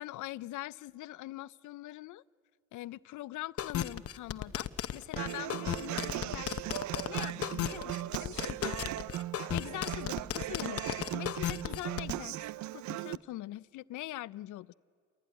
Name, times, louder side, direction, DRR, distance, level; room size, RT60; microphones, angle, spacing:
voice 1, 0.0-2.2 2.7-6.5 6.9-8.8 9.5-12.4 12.7-14.7, left 16 dB, 75° left, 0.5 m, -43 dB
sound 1, 3.6-12.1, left 10 dB, 50° left, 0.8 m, -34 dB
Human voice / Acoustic guitar, 5.2-13.1, right 14 dB, 70° right, 0.5 m, -38 dB
28.5 x 16.0 x 9.6 m
cardioid pair, 90°, 30 cm